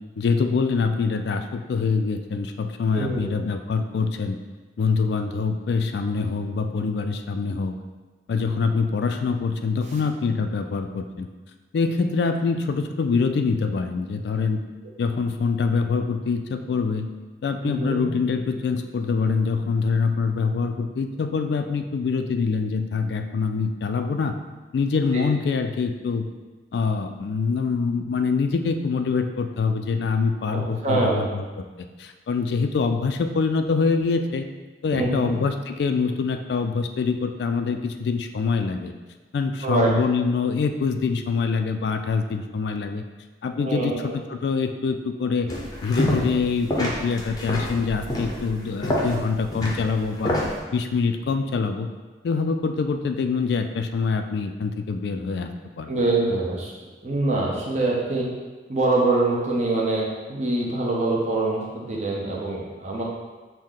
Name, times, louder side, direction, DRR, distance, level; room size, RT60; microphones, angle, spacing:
voice 1, 0.2-4.4 4.8-7.8 8.3-11.3 11.7-14.6 15.0-17.1 17.4-24.4 24.7-26.3 26.7-34.5 34.8-38.9 39.3-43.0 43.4-45.5 45.8-50.4 50.7-51.9 52.2-55.5 55.8-55.9, left 4 dB, 65° left, 6 dB, 0.3 m, -25 dB
voice 2, 2.9-3.3 17.6-18.0 25.1-25.2 30.5-31.3 34.9-35.4 39.6-39.9 43.6-44.1 55.9-56.7 57.0-58.3 58.7-60.0 60.3-63.0, right 2 dB, 40° right, -3 dB, 0.8 m, -24 dB
sound 1, 45.5-46.4 46.7-50.6, equal, 20° left, 0.6 m, -27 dB
6.3 x 2.1 x 3.7 m, 1.3 s
head